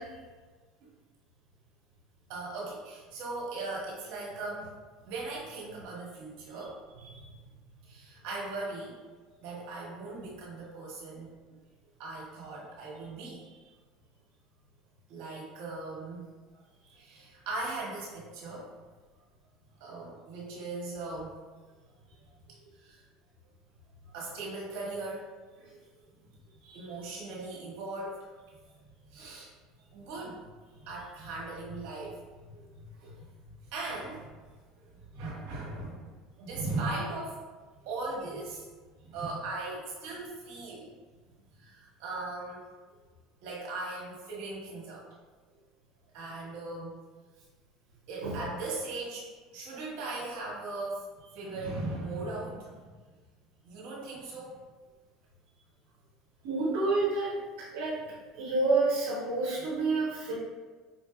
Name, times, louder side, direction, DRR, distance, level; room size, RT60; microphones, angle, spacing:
voice 1, 2.3-4.7 5.1-6.8 7.8-9.0 9.4-11.3 12.0-13.6 15.1-16.3 16.9-18.6 19.8-21.4 22.7-23.0 24.1-25.3 26.7-28.3 29.1-29.5 29.9-30.4 30.8-32.2 32.8-33.2 33.7-34.4 34.8-36.1 36.4-37.4 37.8-38.7 39.0-40.9 41.6-42.6 43.4-45.0 46.1-46.9 48.1-52.7 53.6-54.6, right 2 dB, 70° right, -4 dB, 1.4 m, -38 dB
voice 2, 56.4-57.3 57.6-57.9 58.3-60.3, right 3 dB, 85° right, -8 dB, 0.9 m, -29 dB
5.2 x 2.6 x 2.3 m, 1.4 s
supercardioid pair, 100°, 0 cm